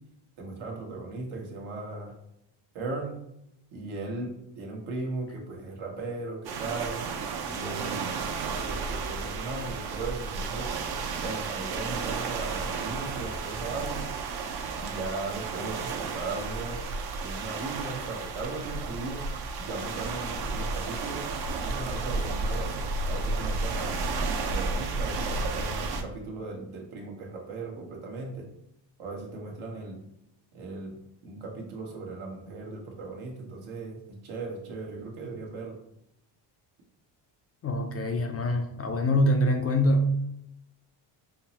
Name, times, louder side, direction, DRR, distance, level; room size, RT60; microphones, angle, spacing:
voice 1, 0.4-2.1 2.7-3.2 3.7-7.0 7.4-8.1 8.4-10.7 11.2-14.0 14.8-16.8 17.2-19.2 19.6-21.3 21.5-24.0 24.3-28.5 29.0-30.0 30.5-30.9 31.2-35.8, right 3 dB, 75° right, 0 dB, 1.2 m, -37 dB
sound 1, 6.4-26.0, right 4 dB, 50° right, 0.6 m, -32 dB
voice 2, 37.6-40.1, equal, 30° left, 4 dB, 0.4 m, -24 dB
5.5 x 2.0 x 2.8 m, 0.80 s
cardioid pair, 85°, 50 cm